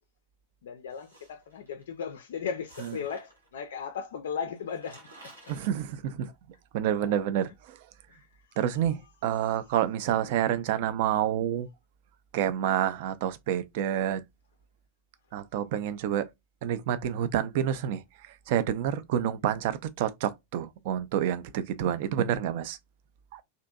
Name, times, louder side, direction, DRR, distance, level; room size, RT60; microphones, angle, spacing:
voice 1, 0.6-5.3 7.0-7.2 8.1-9.0 9.4-9.7 19.2-19.3, left 7 dB, 60° left, 0.3 m, -37 dB
sound 1, 0.9-1.8 2.7-3.6 4.3-4.4 4.6-5.7, right 1 dB, 90° right, 1.2 m, -52 dB
voice 2, 5.5-6.3 6.7-7.8 8.6-11.7 12.3-14.2 15.3-16.3 16.6-22.8 23.3-23.4, right 10 dB, 50° right, 0.3 m, -28 dB
2.6 x 2.5 x 2.3 m
figure-of-eight pair, 90°, 0 cm